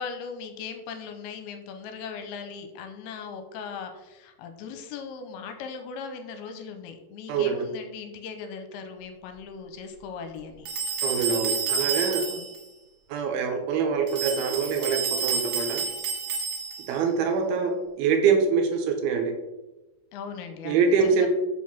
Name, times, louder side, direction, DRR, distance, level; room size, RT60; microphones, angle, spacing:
voice 1, 0.0-10.7 12.3-12.5 20.1-21.3, left 5 dB, 85° left, 6 dB, 2.5 m, -39 dB
voice 2, 7.3-7.7 11.0-12.3 13.1-15.8 16.9-19.3 20.7-21.3, right 5 dB, 80° right, 4 dB, 2.6 m, -24 dB
sound 1, 10.6-12.6 14.1-17.0, right 5 dB, 60° right, 2.1 m, -29 dB
5.9 x 4.7 x 5.8 m, 1.0 s
omnidirectional pair, 4.7 m